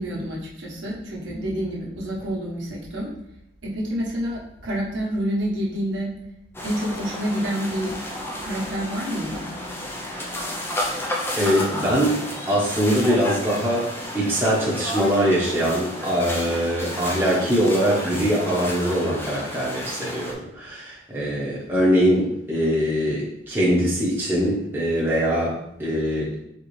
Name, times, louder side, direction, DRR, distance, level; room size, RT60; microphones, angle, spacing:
voice 1, 0.0-3.1 3.6-6.1 6.6-7.9 8.4-9.5, equal, 75° right, -4 dB, 1.2 m, -28 dB
sound 1, 6.5-20.3, left 1 dB, 10° left, 0.5 m, -32 dB
voice 2, 11.0-12.2 12.5-13.9 14.1-26.3, equal, 10° right, -6 dB, 1.0 m, -22 dB
4.3 x 3.8 x 3.2 m, 0.79 s
head